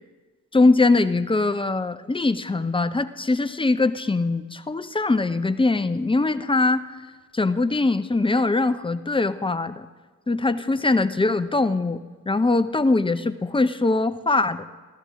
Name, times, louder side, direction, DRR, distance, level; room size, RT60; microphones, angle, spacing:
voice 1, 0.5-6.9 7.3-9.9 10.3-14.7, left 3 dB, 15° left, 11 dB, 0.6 m, -22 dB
13.5 x 13.5 x 3.7 m, 1.3 s
supercardioid pair, 50°, 35 cm